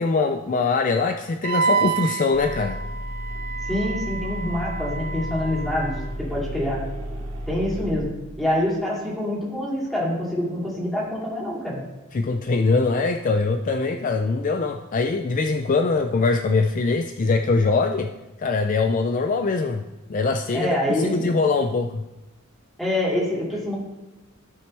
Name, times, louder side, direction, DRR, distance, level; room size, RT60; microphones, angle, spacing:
voice 1, 0.0-2.8 12.1-18.1 18.4-19.8 20.1-22.0, left 4 dB, 40° left, 6 dB, 0.4 m, -22 dB
Wind instrument woodwind instrument, 1.4-6.1, right 5 dB, 45° right, 0.4 m, -29 dB
sound 1, 2.3-8.0, equal, 70° right, 1.3 m, -33 dB
voice 2, 3.7-6.9 7.5-8.1 8.4-11.8 20.5-21.2 22.8-23.7, left 1 dB, ahead, -6 dB, 2.9 m, -26 dB
16.0 x 5.9 x 3.3 m, 1.0 s
head